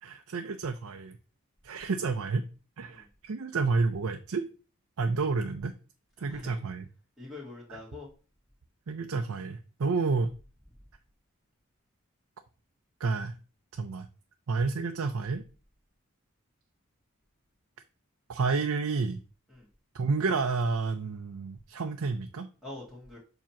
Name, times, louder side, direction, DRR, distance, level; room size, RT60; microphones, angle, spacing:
voice 1, 0.0-1.2 1.6-2.5 2.8-4.5 5.0-5.7 6.2-6.9 7.7-7.8 8.9-10.3 13.0-13.3 13.7-14.1 14.5-15.4 18.3-19.2 19.9-22.5, right 4 dB, 80° right, 5 dB, 0.5 m, -30 dB
voice 2, 6.3-6.6 7.2-8.1 19.5-19.7 22.6-23.2, left 2 dB, ahead, -5 dB, 1.9 m, -44 dB
7.4 x 2.9 x 5.7 m, 0.36 s
head